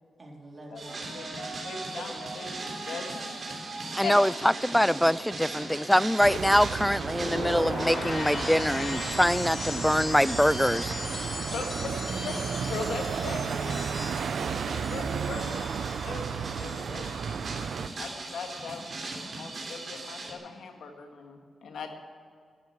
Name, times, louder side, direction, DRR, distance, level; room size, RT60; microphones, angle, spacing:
voice 1, 0.2-1.1 2.0-2.1 11.7-12.6, right 1 dB, 35° right, 3.9 m, -46 dB
sound 1, 0.8-20.3, right 2 dB, 50° right, 3.4 m, -40 dB
voice 2, 1.6-4.2 6.3-6.4 11.5-11.7 12.2-12.3 12.7-13.9 14.3-15.6 16.0-16.3 16.6-17.1 18.0-18.9 19.4-21.9, left 5 dB, 90° left, 1.8 m, -39 dB
voice 3, 3.9-10.9, equal, 5° left, 0.3 m, -24 dB
sound 2, 6.2-17.9, right 6 dB, 75° right, 0.5 m, -33 dB
sound 3, 6.9-17.1 17.3-17.8, left 2 dB, 55° left, 3.4 m, -38 dB
13.5 x 10.5 x 8.0 m
cardioid pair, 85°, 0 cm